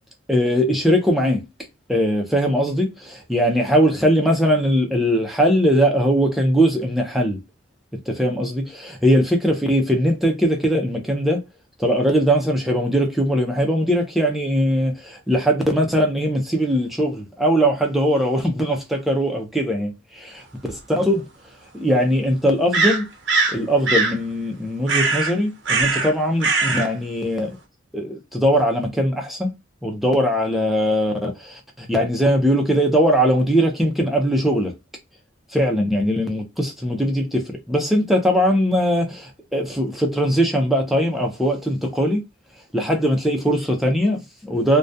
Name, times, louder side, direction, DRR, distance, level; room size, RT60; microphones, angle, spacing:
voice 1, 0.3-1.5 1.9-7.4 8.1-11.4 11.8-21.2 21.7-23.1 23.5-27.6 27.9-29.5 29.8-34.7 35.5-42.2 42.7-44.8, equal, ahead, 0.4 m, -20 dB
sound 1, 20.7-20.8 22.7-23.6 23.9-24.2 24.9-25.3 25.6-26.1 26.4-26.9, right 3 dB, 60° right, 0.5 m, -20 dB
2.3 x 2.1 x 2.5 m
head